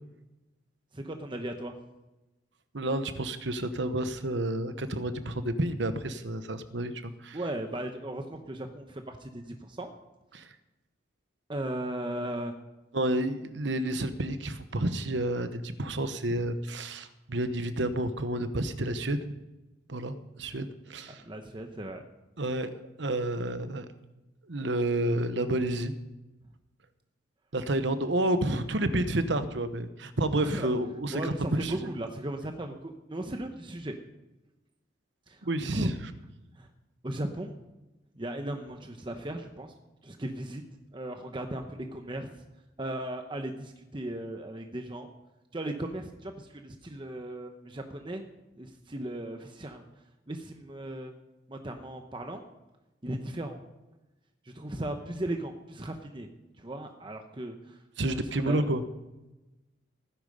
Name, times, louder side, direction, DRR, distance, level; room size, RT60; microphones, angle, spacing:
voice 1, 0.9-1.8 7.3-9.9 11.5-12.5 16.3-16.5 21.1-22.0 30.4-30.7 31.1-33.9 35.3-35.9 36.6-36.7 37.0-37.5 38.2-39.7 40.0-40.6 40.9-42.3 42.8-45.1 45.5-48.2 48.6-49.8 50.3-51.1 51.5-52.4 53.0-53.6 54.4-56.3 56.6-57.8 58.1-58.6, right 1 dB, 25° right, 5 dB, 0.9 m, -37 dB
voice 2, 2.7-7.4 10.3-10.4 12.9-19.2 19.9-21.2 22.4-23.8 24.5-25.9 27.5-31.2 31.5-31.8 35.4-35.9 58.0-58.8, right 1 dB, 70° right, 11 dB, 1.0 m, -30 dB
16.0 x 10.5 x 5.4 m, 1.0 s
head